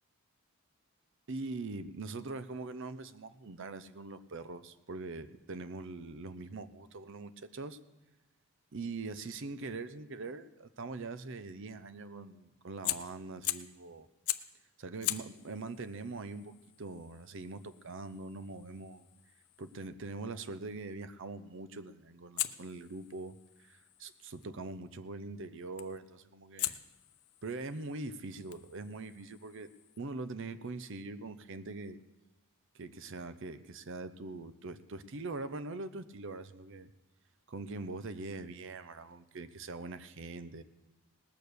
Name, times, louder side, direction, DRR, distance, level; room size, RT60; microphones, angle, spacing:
voice 1, 1.3-7.8 8.7-14.1 14.8-19.1 19.6-26.8 27.4-29.7 30.0-32.0 32.7-36.9 37.5-40.6, right 3 dB, 55° right, 13 dB, 0.6 m, -43 dB
Fire, 12.8-13.8 14.3-14.6 15.0-19.9 22.4-24.5 25.8-26.1 26.6-30.0, left 15 dB, 80° left, 0.5 m, -42 dB
18.5 x 6.6 x 6.8 m, 1.0 s
head